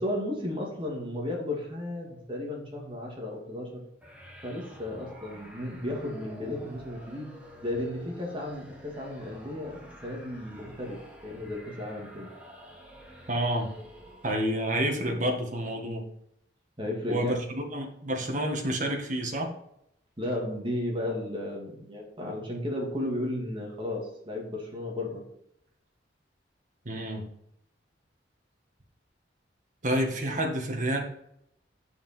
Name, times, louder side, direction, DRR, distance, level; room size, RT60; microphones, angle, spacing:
voice 1, 0.0-3.8 4.4-7.3 7.6-12.3 16.8-17.4 20.2-25.3, left 1 dB, 30° right, -1 dB, 2.3 m, -34 dB
sound 1, 4.0-14.6, equal, 5° right, 1.8 m, -49 dB
voice 2, 13.3-13.7 14.2-16.0 17.1-19.5 26.9-27.3 29.8-31.0, right 1 dB, 45° right, 2 dB, 1.8 m, -29 dB
7.4 x 7.0 x 4.4 m, 0.75 s
head